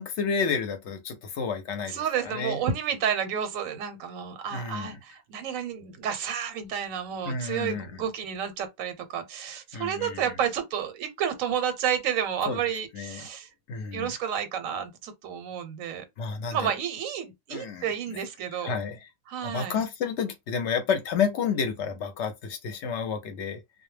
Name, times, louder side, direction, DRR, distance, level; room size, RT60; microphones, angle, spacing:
voice 1, 0.0-2.6 4.5-5.0 7.3-8.0 9.7-10.2 12.5-12.6 12.9-13.3 13.7-14.1 16.2-16.7 17.5-18.2 18.6-19.1 19.4-23.6, left 6 dB, 65° left, 0.8 m, -30 dB
voice 2, 1.9-13.5 13.9-16.0 16.5-18.7 19.3-19.8, right 8 dB, 85° right, 1.0 m, -31 dB
2.2 x 2.0 x 3.1 m
omnidirectional pair, 1.4 m